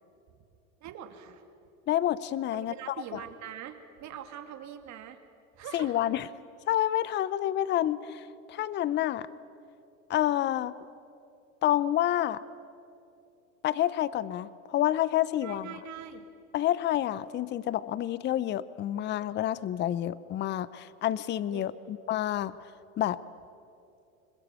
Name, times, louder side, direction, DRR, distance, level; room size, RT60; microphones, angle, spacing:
voice 1, 0.8-1.4 2.5-5.2 5.6-6.1 15.4-16.3 21.5-21.9, right 9 dB, 45° right, 7 dB, 2.6 m, -43 dB
voice 2, 1.9-3.2 5.7-6.3 6.7-9.3 10.1-10.7 11.6-12.4 13.6-15.7 16.5-22.7 23.0-23.2, left 12 dB, 25° left, 18 dB, 0.6 m, -29 dB
25.5 x 21.5 x 9.1 m, 2.7 s
supercardioid pair, 115°, 40 cm